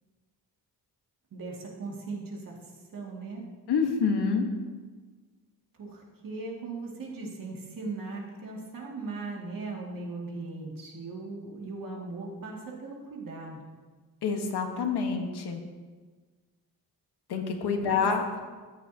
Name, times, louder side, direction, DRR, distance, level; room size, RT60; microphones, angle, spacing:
voice 1, 1.3-2.6 2.9-3.5 5.8-13.6 17.8-18.0, right 3 dB, 55° right, -2 dB, 2.3 m, -38 dB
voice 2, 3.7-4.5 14.2-15.6 17.3-18.2, left 5 dB, 80° left, 4 dB, 1.4 m, -27 dB
14.0 x 10.5 x 2.8 m, 1.4 s
wide cardioid pair, 155°, 39 cm